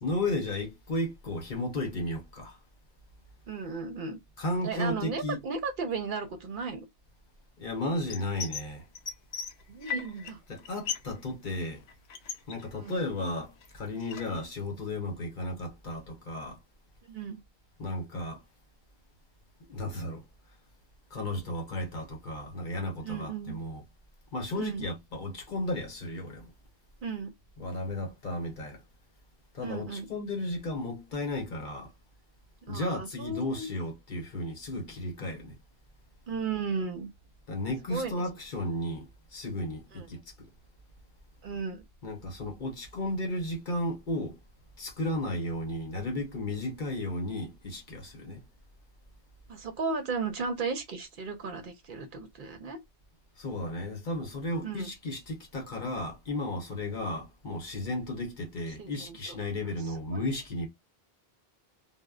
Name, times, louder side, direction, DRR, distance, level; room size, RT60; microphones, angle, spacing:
voice 1, 0.0-2.6 4.4-5.4 7.6-8.9 10.5-11.8 12.5-16.6 17.8-18.4 19.7-20.2 21.1-23.8 24.3-26.5 27.6-28.8 29.5-31.9 32.7-35.6 37.5-40.5 42.0-44.4 44.8-48.4 53.4-60.7, left 1 dB, 55° left, 0.9 m, -34 dB
voice 2, 3.5-4.2 4.6-6.9 9.7-10.4 12.7-13.0 17.1-17.4 23.0-23.6 24.5-24.9 27.0-27.3 29.6-30.1 32.6-33.7 36.3-37.1 37.9-38.1 39.9-40.1 41.4-41.8 49.5-52.8 54.6-54.9 58.8-59.4, right 4 dB, 60° right, 0.7 m, -35 dB
sound 1, 8.1-8.7 8.9-10.3 10.6-11.2 11.4-13.2 13.6-14.4, left 6 dB, 80° left, 0.8 m, -37 dB
2.1 x 2.0 x 3.5 m
omnidirectional pair, 1.1 m